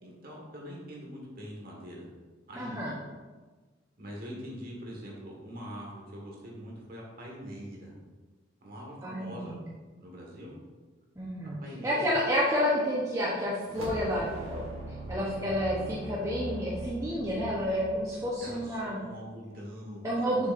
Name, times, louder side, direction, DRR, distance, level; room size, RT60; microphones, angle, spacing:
voice 1, 0.0-2.1 2.5-2.8 4.0-7.9 8.6-9.5 10.0-10.5 11.4-12.1 18.4-20.5, equal, 45° right, -2 dB, 1.6 m, -43 dB
voice 2, 2.6-2.9 9.0-9.6 11.2-14.6 15.1-19.0 20.0-20.5, equal, 15° right, -6 dB, 0.8 m, -30 dB
sound 1, 13.6-19.0, right 2 dB, 90° right, 1.2 m, -41 dB
7.1 x 6.3 x 2.5 m, 1.3 s
head